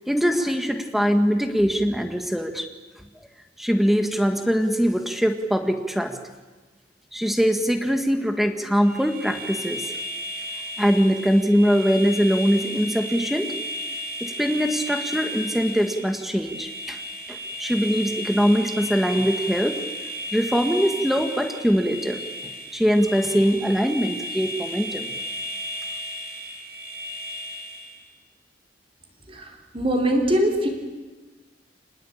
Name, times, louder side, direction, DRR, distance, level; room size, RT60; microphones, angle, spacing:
voice 1, 0.1-2.7 3.6-6.2 7.1-9.9 10.8-13.5 14.2-17.0 17.3-19.8 20.3-22.2 22.7-25.1, equal, ahead, 6 dB, 1.7 m, -22 dB
sound 1, 8.8-28.1, equal, 60° right, 6.7 m, -34 dB
voice 2, 29.3-30.7, equal, 30° right, 2 dB, 4.2 m, -22 dB
28.0 x 20.0 x 8.8 m, 1.3 s
head